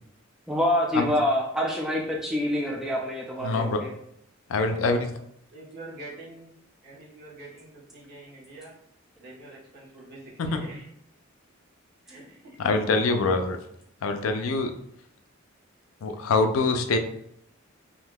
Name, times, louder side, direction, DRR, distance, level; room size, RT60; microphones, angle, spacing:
voice 1, 0.5-3.9, left 1 dB, 5° right, -2 dB, 0.4 m, -26 dB
voice 2, 3.4-3.8 4.5-5.1 10.4-10.6 12.6-13.6 14.0-14.7 16.0-17.0, left 3 dB, 85° left, 7 dB, 0.4 m, -24 dB
voice 3, 4.5-5.0 5.5-6.5 6.8-7.7 7.9-8.7 9.2-10.9 12.0-13.0, right 2 dB, 55° right, -5 dB, 1.2 m, -45 dB
3.6 x 2.7 x 2.2 m, 0.73 s
head